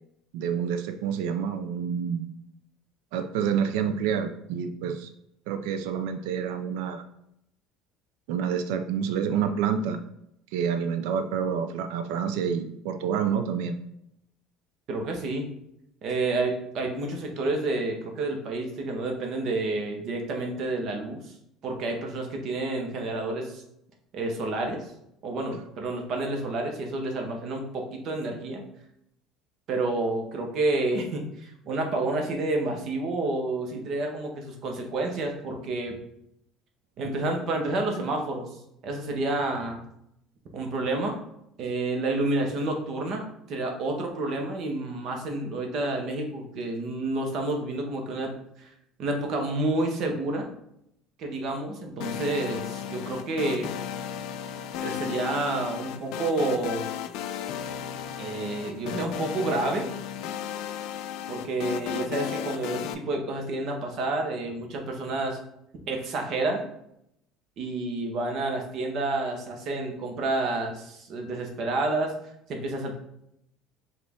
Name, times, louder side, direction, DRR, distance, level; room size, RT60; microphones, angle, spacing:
voice 1, 0.3-2.3 3.1-5.1 5.5-7.0 8.3-10.0 10.5-13.8, right 7 dB, 85° right, 8 dB, 0.4 m, -28 dB
voice 2, 14.9-15.5 16.0-21.2 21.6-23.6 24.1-24.9 25.2-28.6 29.7-35.9 37.0-38.5 38.8-39.8 40.5-41.2 41.6-48.3 48.6-48.7 49.0-50.5 51.2-53.7 54.8-56.9 58.2-59.9 61.3-65.4 65.9-66.7 67.6-72.1 72.5-73.0, right 2 dB, 45° right, 2 dB, 0.8 m, -29 dB
sound 1, 52.0-62.9, left 9 dB, 60° left, 0.3 m, -35 dB
5.0 x 2.4 x 3.4 m, 0.77 s
cardioid pair, 160°, 0 cm